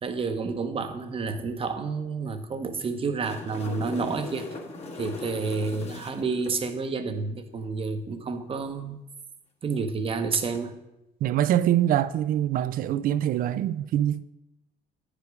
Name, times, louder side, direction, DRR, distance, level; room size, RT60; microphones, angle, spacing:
voice 1, 0.0-4.5 5.0-9.0 9.6-10.8, right 4 dB, 35° right, 0.9 m, -30 dB
sound 1, 2.9-6.6 10.4-10.6, left 3 dB, 40° left, 1.2 m, -39 dB
voice 2, 11.2-14.2, right 11 dB, 55° right, 0.4 m, -24 dB
9.5 x 5.1 x 4.7 m
cardioid pair, 110°, 17 cm